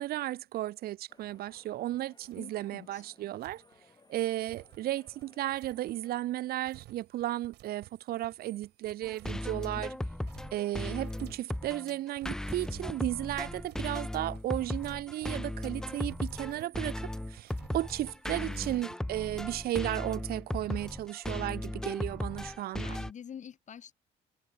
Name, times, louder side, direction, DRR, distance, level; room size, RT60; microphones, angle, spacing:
voice 1, 0.0-3.6 4.1-9.9 10.5-23.0, right 14 dB, 65° right, 0.7 m, -34 dB
sound 1, 1.1-6.1, left 4 dB, 25° left, 4.3 m, -63 dB
sound 2, 1.2-2.0 2.2-2.6 3.3-19.0, right 16 dB, 80° right, 4.3 m, -56 dB
voice 2, 2.4-3.0 9.5-9.8 18.4-18.7 22.8-23.9, left 8 dB, 45° left, 3.6 m, -47 dB
sound 3, 9.0-23.1, left 1 dB, 5° left, 0.3 m, -37 dB
cardioid pair, 110°, 17 cm